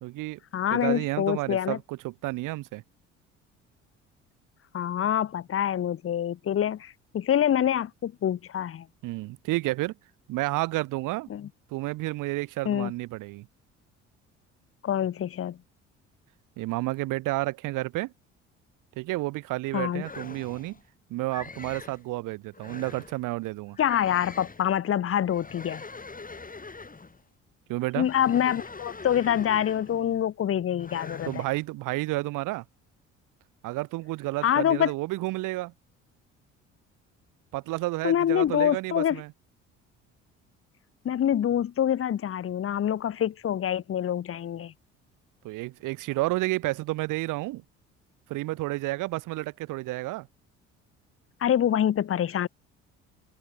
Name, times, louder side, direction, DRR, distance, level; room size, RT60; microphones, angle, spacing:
voice 1, 0.0-0.4 0.7-2.8 9.0-9.9 10.3-11.3 11.7-13.5 16.6-18.1 19.0-20.8 21.1-23.8 27.7-28.1 31.3-32.6 33.6-35.7 37.5-39.3 45.4-47.6 48.3-50.3, right 19 dB, 60° right, 1.2 m, -31 dB
voice 2, 0.5-1.8 4.7-8.9 11.3-11.5 12.6-12.9 14.8-15.6 19.7-20.0 23.8-25.8 28.0-31.4 34.4-34.9 38.0-39.2 41.0-44.7 51.4-52.5, left 10 dB, 40° left, 1.1 m, -26 dB
sound 1, 20.0-20.8 21.3-22.0 22.5-23.2 23.7-24.7 25.2-27.2 27.9-30.1 30.8-31.6, left 3 dB, 25° left, 7.1 m, -43 dB
hypercardioid pair, 55°, 35 cm